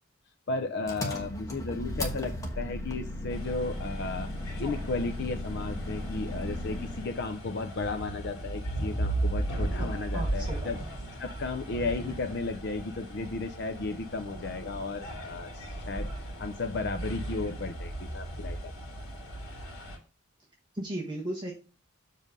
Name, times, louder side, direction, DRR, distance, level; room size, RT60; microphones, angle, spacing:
voice 1, 0.5-4.3 4.6-10.8 11.2-16.1 16.4-18.7, left 3 dB, 55° left, 7 dB, 0.6 m, -34 dB
Engine, 0.9-7.2, left 1 dB, 15° left, 1.2 m, -36 dB
sound 1, 3.3-20.0, right 1 dB, 80° left, 2.6 m, -36 dB
voice 2, 9.8-10.7 20.7-21.5, right 1 dB, 20° right, -3 dB, 1.3 m, -36 dB
7.3 x 3.8 x 5.4 m, 0.35 s
head